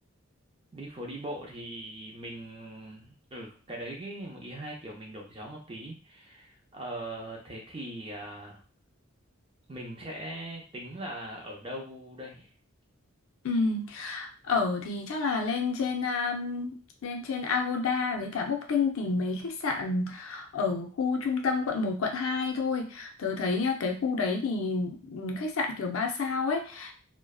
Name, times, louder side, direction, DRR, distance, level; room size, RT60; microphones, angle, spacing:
voice 1, 0.7-8.6 9.7-12.5 14.4-14.5, right 1 dB, 25° right, -1 dB, 0.5 m, -40 dB
voice 2, 13.4-16.7 17.0-27.0, left 4 dB, 75° left, 2 dB, 0.5 m, -29 dB
2.5 x 2.1 x 2.3 m, 0.38 s
head